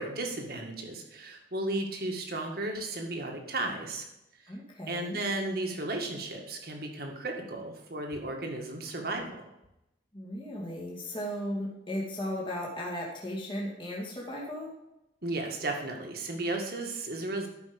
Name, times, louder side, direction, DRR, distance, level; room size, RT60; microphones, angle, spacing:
voice 1, 0.0-4.1 4.9-9.4 15.2-17.5, right 2 dB, 55° right, 2 dB, 1.8 m, -34 dB
voice 2, 4.5-5.2 10.1-14.7, equal, 25° left, -4 dB, 2.2 m, -36 dB
12.5 x 5.6 x 5.2 m, 0.88 s
head